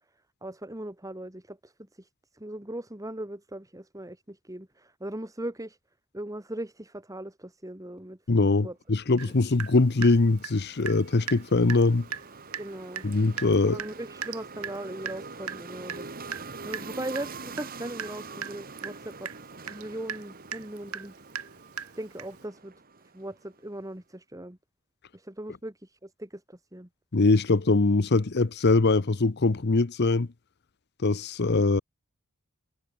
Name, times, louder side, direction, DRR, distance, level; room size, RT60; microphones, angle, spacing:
voice 1, 0.4-5.8 6.1-8.2 8.4-8.8 12.6-13.0 13.6-16.1 16.6-19.3 19.7-21.1 22.0-22.7 23.1-24.6 25.1-26.9, right 1 dB, 15° right, 2.6 m, -39 dB
voice 2, 8.3-12.1 13.0-13.8 27.1-30.3 31.0-31.8, left 3 dB, 50° left, 0.8 m, -22 dB
Water tap faucet / Drip, 9.2-9.3 9.6-11.0 11.3-11.4 11.7-11.9 12.1-12.3 12.5-12.7 13.0-22.4, right 7 dB, 85° right, 5.9 m, -38 dB
sound 1, 9.3-23.6, right 4 dB, 40° right, 2.5 m, -45 dB
head